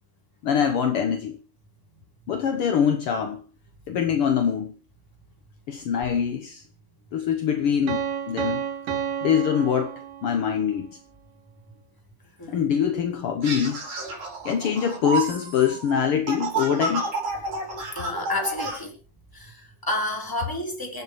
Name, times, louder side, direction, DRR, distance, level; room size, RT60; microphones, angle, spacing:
voice 1, 0.4-1.4 2.3-3.4 3.9-4.8 5.7-6.6 7.1-8.0 8.3-8.6 9.2-11.0 12.5-13.9 14.4-17.1, left 8 dB, 70° left, 1.3 m, -24 dB
Piano, 7.9-10.7, right 8 dB, 80° right, 3.4 m, -31 dB
sound 1, 13.4-18.8, right 3 dB, 60° right, 6.6 m, -30 dB
voice 2, 17.9-18.9 19.3-21.0, left 1 dB, 5° left, 3.5 m, -30 dB
27.0 x 9.5 x 3.2 m
omnidirectional pair, 3.9 m